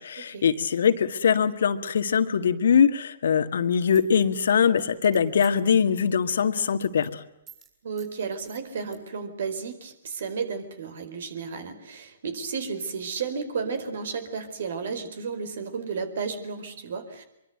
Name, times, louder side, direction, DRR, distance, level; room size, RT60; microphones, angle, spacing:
voice 1, 0.0-7.2, left 7 dB, 60° left, 10 dB, 1.9 m, -22 dB
sound 1, 3.9-5.7 6.1-6.3 6.6-7.1 7.5-7.7 8.0-8.1 8.5-9.0, right 8 dB, 25° right, 7.0 m, -52 dB
voice 2, 7.8-17.3, right 5 dB, 60° right, 11 dB, 4.5 m, -33 dB
24.5 x 24.0 x 8.0 m, 0.83 s
figure-of-eight pair, 125°, 0 cm